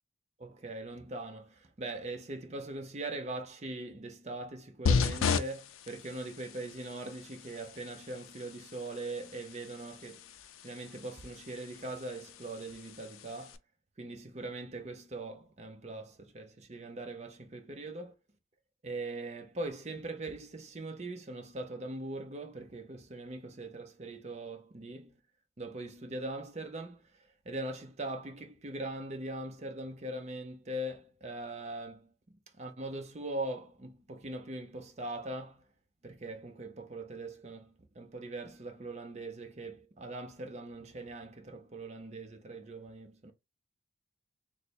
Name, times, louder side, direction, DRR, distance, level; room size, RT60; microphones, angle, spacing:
voice 1, 0.4-10.3 10.6-13.6 14.0-18.1 18.8-25.2 25.6-35.7 36.0-43.3, right 2 dB, 35° right, 0.6 m, -41 dB
sound 1, 4.9-13.6, left 5 dB, 85° left, 0.4 m, -36 dB
3.3 x 2.0 x 4.2 m
head